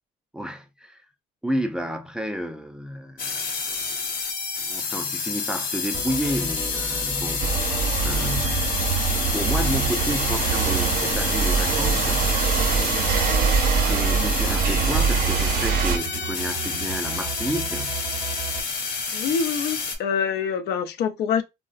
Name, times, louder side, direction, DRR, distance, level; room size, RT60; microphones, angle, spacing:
voice 1, 0.3-1.0 1.4-4.0 4.6-7.8 8.0-8.8 9.3-12.3 13.5-18.0, equal, 5° right, 0.3 m, -31 dB
sound 1, 3.2-20.0, left 5 dB, 55° left, 0.8 m, -28 dB
sound 2, 5.9-18.6, right 6 dB, 25° right, 0.7 m, -35 dB
sound 3, 7.4-16.0, right 6 dB, 60° right, 0.5 m, -23 dB
voice 2, 19.1-21.4, left 6 dB, 70° left, 0.4 m, -25 dB
3.2 x 2.0 x 2.3 m
cardioid pair, 110°, 17 cm